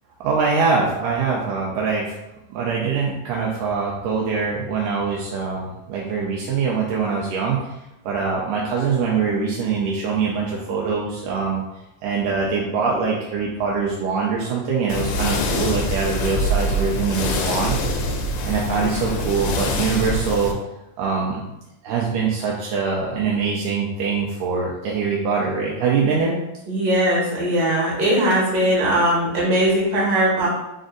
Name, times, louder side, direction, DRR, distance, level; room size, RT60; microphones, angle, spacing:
voice 1, 0.2-2.2 2.5-7.6 8.1-11.6 12.0-17.8 18.5-20.5 21.0-21.5 21.8-26.3, right 5 dB, 80° right, -3 dB, 1.9 m, -23 dB
sound 1, 14.9-20.5, left 1 dB, 85° left, 1.6 m, -24 dB
voice 2, 26.7-30.5, right 1 dB, 55° right, -6 dB, 2.4 m, -19 dB
5.2 x 2.6 x 3.8 m, 0.93 s
omnidirectional pair, 3.8 m